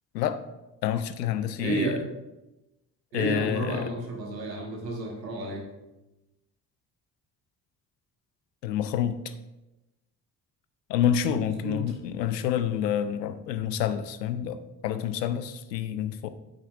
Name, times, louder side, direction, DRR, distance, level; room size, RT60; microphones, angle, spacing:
voice 1, 0.8-2.0 3.1-3.9 8.6-9.2 10.9-16.3, left 9 dB, 90° left, 12 dB, 0.6 m, -28 dB
voice 2, 1.6-2.0 3.1-5.6 11.6-11.8, right 2 dB, 85° right, 0 dB, 1.5 m, -31 dB
9.0 x 8.8 x 2.5 m, 1.0 s
hypercardioid pair, 45°, 48 cm